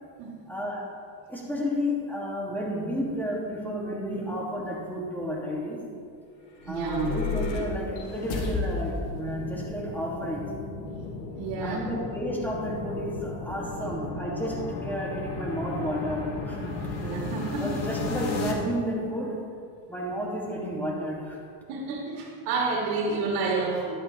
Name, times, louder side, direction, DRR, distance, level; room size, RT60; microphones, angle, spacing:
voice 1, 0.5-0.9 1.3-5.8 6.7-10.5 11.6-17.1 17.6-19.5 19.9-21.4, equal, 5° left, -4 dB, 2.7 m, -32 dB
sound 1, 6.5-18.5, left 3 dB, 75° left, 1.8 m, -34 dB
voice 2, 6.7-7.1 11.4-11.8 17.0-17.7 21.7-23.9, right 4 dB, 85° right, -2 dB, 2.1 m, -29 dB
11.5 x 9.7 x 3.5 m, 2.3 s
supercardioid pair, 95°, 47 cm